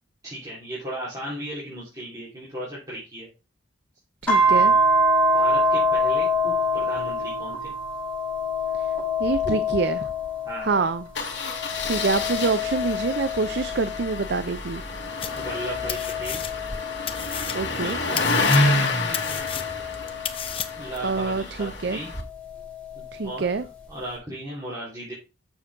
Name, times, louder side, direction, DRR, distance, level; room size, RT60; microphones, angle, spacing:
voice 1, 0.2-3.3 5.3-7.7 9.4-9.6 10.4-10.7 15.4-16.4 17.7-18.8 20.8-22.1 22.9-23.4 23.9-25.1, right 1 dB, 20° right, 3.8 m, -36 dB
voice 2, 4.2-4.8 8.7-8.9 9.2-10.1 10.6-11.1 11.8-14.8 17.5-18.0 21.0-22.0 23.1-23.6, right 4 dB, 60° right, 0.5 m, -26 dB
sound 1, 4.3-11.0 11.4-14.3 14.9-17.7 18.4-20.9 22.2-23.3, left 1 dB, 10° left, 3.6 m, -26 dB
Engine starting, 9.2-9.5 9.7-9.8 10.1-10.2 11.1-22.2, left 2 dB, 60° left, 1.8 m, -28 dB
sound 2, 15.2-15.6 15.9-16.8 17.1-21.0, left 8 dB, 30° left, 0.7 m, -33 dB
7.1 x 7.1 x 3.7 m
head